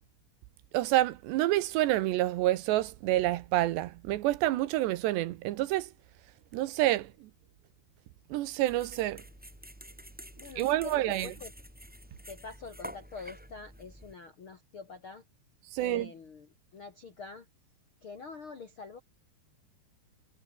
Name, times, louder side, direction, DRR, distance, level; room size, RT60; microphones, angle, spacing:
voice 1, 0.7-5.9 6.5-7.1 8.3-9.2 10.6-11.3 15.7-16.1, right 15 dB, 75° right, 3.0 m, -28 dB
sound 1, 8.7-14.1, equal, ahead, 5.3 m, -48 dB
voice 2, 10.3-11.5 12.3-15.2 15.8-17.5 18.0-19.0, left 4 dB, 55° left, 1.4 m, -45 dB
omnidirectional pair, 5.3 m